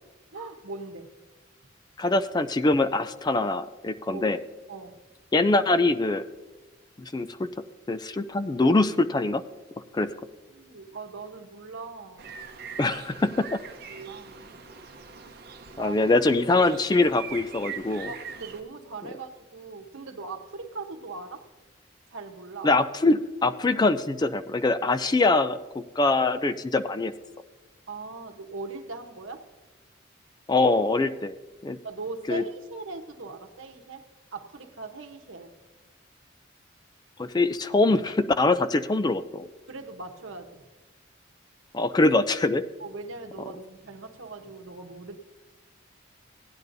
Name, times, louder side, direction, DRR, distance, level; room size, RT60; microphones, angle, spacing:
voice 1, 0.3-1.1 4.1-4.3 4.7-5.0 10.0-10.1 10.5-12.3 13.9-14.5 15.8-16.0 18.1-21.4 22.1-22.7 27.9-29.4 31.8-34.1 34.3-35.5 39.7-40.6 42.8-45.2, right 3 dB, 80° right, 4 dB, 1.0 m, -40 dB
voice 2, 2.0-4.4 5.3-6.2 7.0-7.5 7.9-9.4 9.9-10.1 12.8-13.5 15.8-18.1 22.6-27.1 30.5-31.3 31.6-31.8 32.3-32.4 37.2-39.5 41.7-42.6, left 2 dB, 20° left, 11 dB, 0.3 m, -23 dB
sound 1, 12.2-18.6, right 6 dB, 50° right, 0.7 m, -42 dB
16.5 x 10.0 x 2.7 m, 1.2 s
head